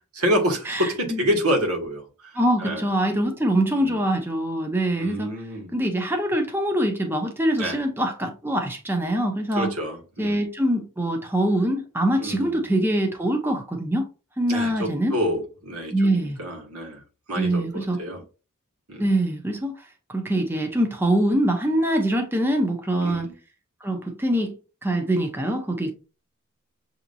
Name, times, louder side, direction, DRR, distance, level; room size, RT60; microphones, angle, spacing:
voice 1, 0.1-2.3 2.6-2.9 3.8-4.1 5.0-5.8 7.6-7.8 9.5-10.4 12.2-12.6 14.5-17.0 17.3-18.2 18.9-19.1 23.0-23.3, equal, 85° right, 1.5 m, -28 dB
voice 2, 0.7-1.2 2.4-5.3 5.7-9.7 10.2-14.1 14.4-15.2 15.9-16.4 17.4-18.0 19.0-19.7 20.1-23.3 23.8-24.5 24.8-25.9, right 1 dB, 10° right, 0.7 m, -24 dB
7.0 x 2.8 x 2.6 m
head